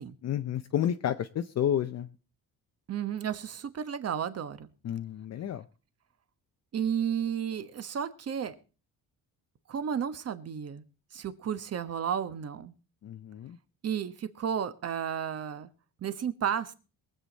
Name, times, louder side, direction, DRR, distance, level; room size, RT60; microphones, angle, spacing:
voice 1, 0.2-2.1 4.8-5.6 13.0-13.6, left 10 dB, 45° left, 9 dB, 0.7 m, -30 dB
voice 2, 2.9-4.7 6.7-8.6 9.7-10.8 11.1-12.7 13.8-15.7 16.0-16.7, right 8 dB, 40° right, 11 dB, 1.2 m, -32 dB
22.5 x 8.0 x 4.1 m, 0.35 s
cardioid pair, 150°, 37 cm